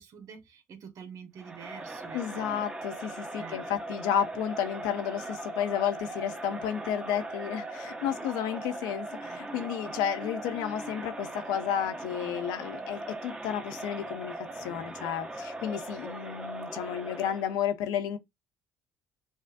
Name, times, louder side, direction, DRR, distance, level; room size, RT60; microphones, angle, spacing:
voice 1, 0.0-2.6 3.4-3.6, right 6 dB, 55° right, 1.2 m, -46 dB
Crowd, 1.4-17.6, right 2 dB, 15° right, 0.8 m, -39 dB
voice 2, 2.1-18.2, left 9 dB, 90° left, 0.5 m, -32 dB
5.3 x 2.4 x 2.5 m
cardioid pair, 100°, 7 cm